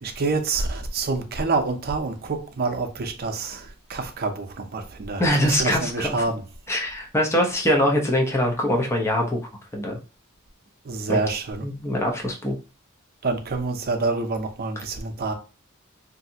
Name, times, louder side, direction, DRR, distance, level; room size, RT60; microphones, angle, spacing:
voice 1, 0.0-6.4 10.8-11.6 13.2-15.3, right 3 dB, 45° right, 0.6 m, -27 dB
voice 2, 5.2-6.2 6.7-9.4 9.7-10.0 11.1-11.2 11.6-12.5, left 1 dB, 15° left, 0.7 m, -23 dB
3.2 x 2.7 x 2.7 m
head